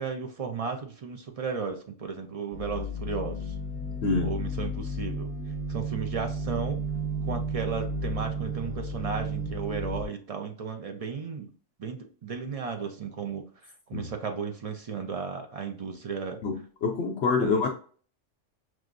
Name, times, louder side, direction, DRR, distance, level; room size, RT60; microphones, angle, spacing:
voice 1, 0.0-3.5 4.2-5.3 5.7-6.8 7.2-11.5 11.8-13.4 13.9-16.4 17.4-17.7, right 6 dB, 50° right, 4 dB, 0.4 m, -34 dB
sound 1, 2.5-10.0, right 1 dB, 15° left, 0.5 m, -33 dB
voice 2, 16.4-17.7, left 4 dB, 65° left, 3 dB, 0.8 m, -26 dB
6.2 x 2.4 x 2.5 m, 0.42 s
omnidirectional pair, 1.3 m